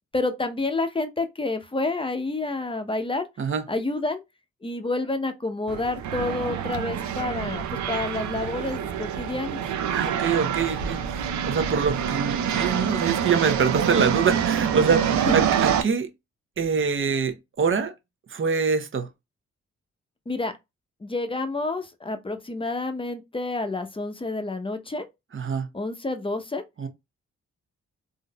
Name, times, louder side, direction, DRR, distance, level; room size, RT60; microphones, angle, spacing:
voice 1, 0.1-3.3 3.7-4.2 4.6-9.6 15.1-15.4 20.3-20.5 21.0-25.1 25.7-26.6, left 2 dB, 20° left, 0.8 m, -29 dB
sound 1, 5.7-15.8, right 8 dB, 70° right, 0.6 m, -26 dB
voice 2, 9.9-16.1 16.6-17.9 18.3-19.1 25.3-25.7 26.8-26.9, right 5 dB, 45° right, 0.9 m, -25 dB
3.8 x 2.6 x 2.3 m
supercardioid pair, 50°, 29 cm